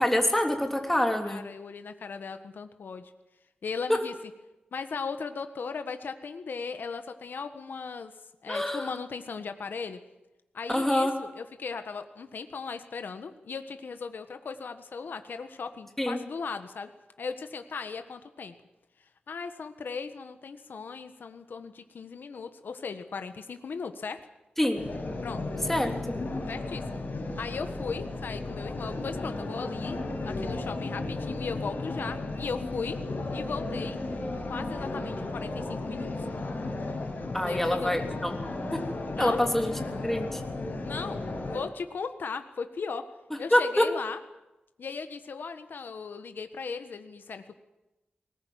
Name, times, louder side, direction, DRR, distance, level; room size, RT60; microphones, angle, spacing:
voice 1, 0.0-1.4 8.5-8.9 10.7-11.1 16.0-16.2 24.6-24.8 25.7-25.9 37.3-38.4 38.7-38.8 39.2-40.4 43.5-43.9, left 1 dB, 10° left, 3 dB, 3.4 m, -26 dB
voice 2, 1.2-3.1 3.6-4.1 4.7-8.1 8.4-10.0 10.5-16.9 17.2-18.5 19.3-24.2 25.2-25.4 26.5-27.0 27.4-33.0 33.3-34.0 34.5-36.1 37.5-38.1 39.2-39.4 40.8-43.1 43.4-44.2 44.8-47.6, left 5 dB, 85° left, 8 dB, 1.5 m, -37 dB
sound 1, 24.8-41.6, left 2 dB, 60° left, 6.2 m, -34 dB
20.5 x 19.5 x 9.4 m, 0.98 s
wide cardioid pair, 105°, 3 cm